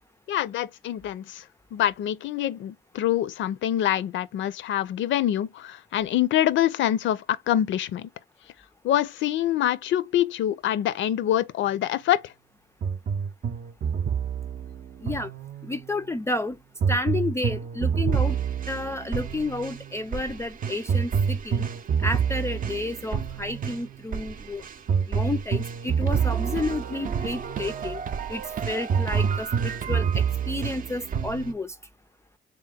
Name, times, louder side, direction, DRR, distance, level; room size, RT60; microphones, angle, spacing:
voice 1, 0.3-1.4 1.7-8.1 8.8-12.3, left 12 dB, 70° left, 0.5 m, -25 dB
sound 1, 12.8-15.9 16.8-31.5, right 7 dB, 45° right, 0.5 m, -27 dB
voice 2, 15.6-16.6 16.9-18.4 18.7-21.6 22.0-24.7 25.1-28.0 28.3-31.8, left 2 dB, 15° left, 0.3 m, -31 dB
3.6 x 2.9 x 3.5 m
cardioid pair, 90°, 20 cm